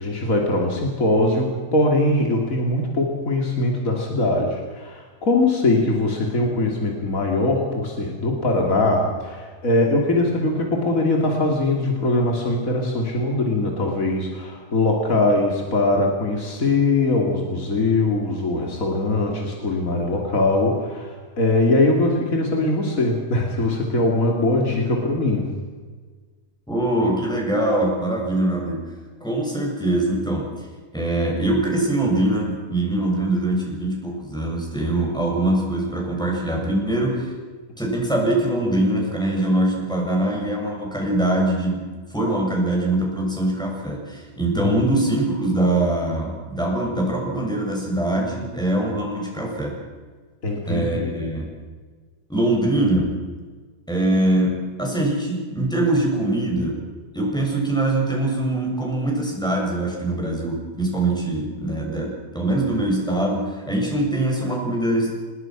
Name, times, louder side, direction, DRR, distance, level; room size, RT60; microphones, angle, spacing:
voice 1, 0.0-25.5 44.6-45.0 50.4-51.1, left 2 dB, 70° left, 0 dB, 3.2 m, -21 dB
voice 2, 26.7-28.8 29.2-30.6 30.9-37.3 37.8-49.8 50.7-51.5 52.3-53.2 53.9-56.9 57.1-65.2, right 1 dB, 5° left, -1 dB, 7.2 m, -23 dB
27.0 x 20.0 x 6.2 m, 1.5 s
omnidirectional pair, 1.5 m